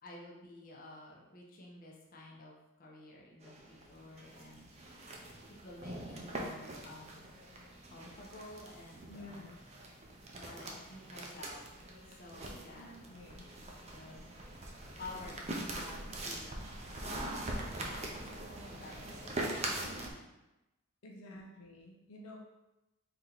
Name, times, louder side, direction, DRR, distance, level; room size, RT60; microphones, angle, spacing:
voice 1, 0.0-4.7 5.6-7.2 7.9-9.4 9.7-9.8 10.3-11.7 12.1-13.5 13.9-14.2 15.0-16.6 16.9-18.0 18.3-20.4 21.2-21.4, left 2 dB, 40° left, -2 dB, 0.8 m, -51 dB
sound 1, 3.4-20.1, right 1 dB, 30° right, 0.6 m, -43 dB
voice 2, 9.1-9.6 12.5-13.5 21.0-22.4, left 1 dB, 75° left, -1 dB, 0.6 m, -51 dB
4.5 x 2.9 x 3.9 m, 0.98 s
head